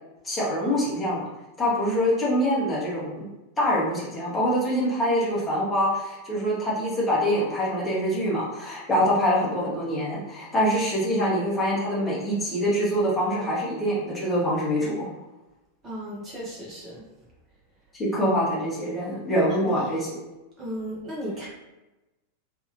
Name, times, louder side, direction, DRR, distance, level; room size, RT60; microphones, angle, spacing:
voice 1, 0.2-1.2 1.6-3.2 3.6-15.1 18.0-20.2, equal, 15° left, -7 dB, 1.1 m, -25 dB
voice 2, 15.8-17.0 19.5-19.9 20.6-21.5, equal, 25° right, -5 dB, 0.9 m, -35 dB
2.7 x 2.7 x 2.6 m, 1.0 s
figure-of-eight pair, 90°, 0 cm